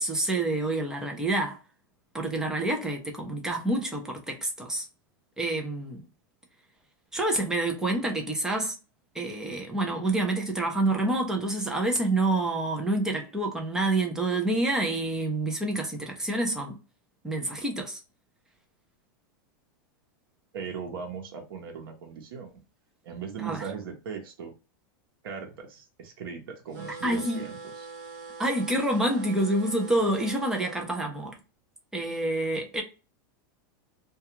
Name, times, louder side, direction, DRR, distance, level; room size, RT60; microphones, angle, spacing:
voice 1, 0.0-1.6 2.1-4.9 5.4-6.0 7.1-8.8 9.1-16.7 17.2-18.0 23.4-23.6 27.0-27.5 28.4-31.4 31.9-32.8, right 2 dB, 5° right, 0.4 m, -27 dB
voice 2, 20.5-22.6 23.0-24.5 25.2-27.9, right 6 dB, 90° right, 0.9 m, -39 dB
sound 1, 26.7-30.8, right 4 dB, 60° right, 0.8 m, -43 dB
2.3 x 2.3 x 2.8 m
supercardioid pair, 165°, 12 cm